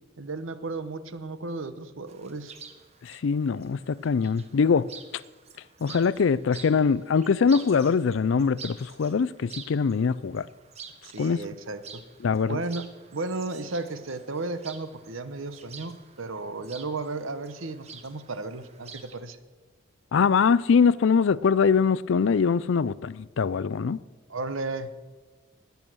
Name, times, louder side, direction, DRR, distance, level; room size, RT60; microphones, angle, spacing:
voice 1, 0.2-2.5 11.0-12.0 12.4-19.4 24.3-24.9, right 3 dB, 75° right, 0.9 m, -34 dB
Chirp tweet, 2.1-19.2, right 6 dB, 30° right, 1.0 m, -48 dB
voice 2, 3.0-4.9 5.8-10.5 11.2-11.4 12.2-12.6 20.1-24.0, left 5 dB, 70° left, 0.4 m, -23 dB
19.5 x 7.0 x 6.2 m
head